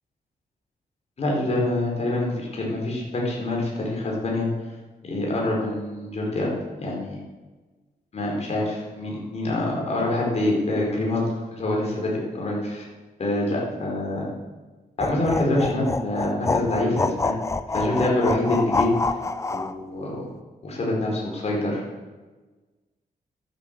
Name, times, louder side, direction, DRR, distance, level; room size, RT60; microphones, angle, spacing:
voice 1, 1.2-4.5 5.0-6.5 6.8-7.2 8.1-12.8 13.2-14.3 15.0-17.4 17.7-18.9 19.5-20.1 20.6-21.8, left 1 dB, 45° left, -2 dB, 4.8 m, -25 dB
sound 1, 15.0-19.7, left 3 dB, 20° left, 0.6 m, -26 dB
13.0 x 11.5 x 7.8 m, 1.3 s
wide cardioid pair, 175°, 16 cm